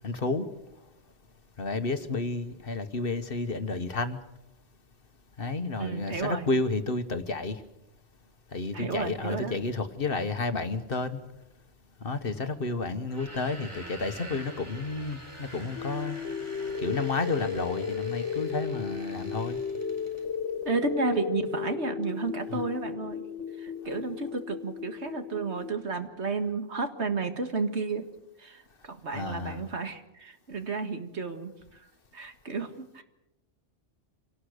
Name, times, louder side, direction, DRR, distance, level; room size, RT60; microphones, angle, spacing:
voice 1, 0.0-0.5 1.6-4.2 5.4-7.6 8.5-11.2 12.0-16.2 16.8-19.6 22.5-22.6 29.1-29.7, left 3 dB, 55° left, 10 dB, 1.4 m, -31 dB
voice 2, 5.8-6.5 8.7-9.6 20.7-23.2 23.6-28.1 28.4-31.9 32.1-33.0, right 4 dB, 70° right, 7 dB, 2.1 m, -32 dB
sound 1, 13.0-20.3, right 1 dB, 25° right, 4.4 m, -46 dB
sound 2, 15.8-25.8, left 7 dB, 80° left, 1.8 m, -35 dB
26.0 x 18.5 x 6.6 m, 0.90 s
omnidirectional pair, 1.2 m